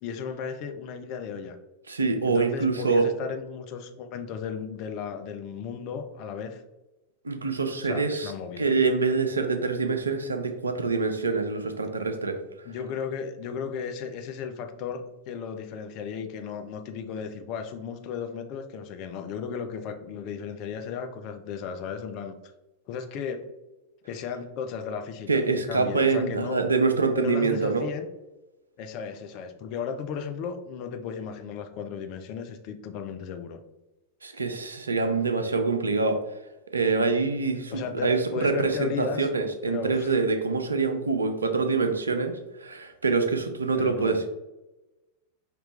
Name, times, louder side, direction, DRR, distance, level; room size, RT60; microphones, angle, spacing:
voice 1, 0.0-1.6 2.2-6.6 7.8-8.6 12.6-22.3 22.9-23.5 24.0-25.4 25.7-26.6 27.2-28.1 28.8-33.6 37.7-39.3 39.7-40.1 43.8-44.2, left 6 dB, 40° left, 7 dB, 0.5 m, -35 dB
voice 2, 1.9-3.1 7.2-12.4 25.3-27.8 34.2-36.2 36.7-44.3, right 4 dB, 75° right, 6 dB, 0.6 m, -25 dB
5.1 x 3.0 x 3.3 m, 1.0 s
figure-of-eight pair, 90°, 0 cm